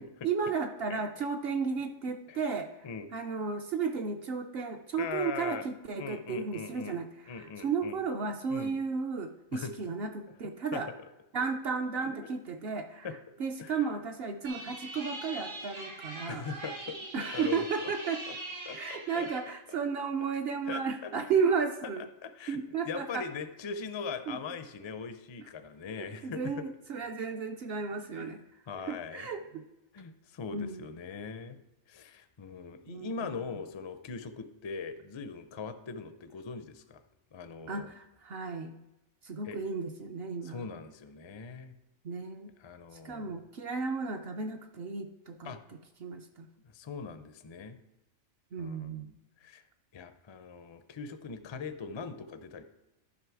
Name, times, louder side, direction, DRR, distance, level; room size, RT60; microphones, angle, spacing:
voice 1, 0.2-2.7 3.1-7.1 7.4-10.9 11.3-13.1 13.4-16.4 17.1-18.2 18.7-22.0 22.5-23.2 24.3-24.4 26.2-28.4 28.8-29.6 30.5-30.9 32.9-33.1 37.7-38.7 39.2-40.7 42.0-42.5 43.0-45.5 46.0-46.5 48.5-49.1, right 5 dB, 60° right, 4 dB, 0.8 m, -33 dB
voice 2, 0.9-1.3 2.1-2.4 2.8-3.1 5.0-5.7 6.0-7.0 7.3-8.0 8.5-8.7 9.5-9.7 10.7-10.8 12.0-12.3 13.0-13.1 13.6-13.8 16.3-17.9 18.3-18.4 18.6-19.8 20.7-21.1 21.8-21.9 22.2-26.6 28.2-28.3 28.7-29.3 29.9-31.6 31.9-37.0 37.3-37.9 39.4-39.6 40.4-41.7 42.6-43.4 45.4-45.6 46.6-47.8 48.6-49.6 49.9-52.6, left 5 dB, 45° left, 10 dB, 0.4 m, -41 dB
sound 1, 14.4-19.4, right 2 dB, 80° right, 2.1 m, -42 dB
11.5 x 5.6 x 4.6 m, 0.97 s
omnidirectional pair, 1.3 m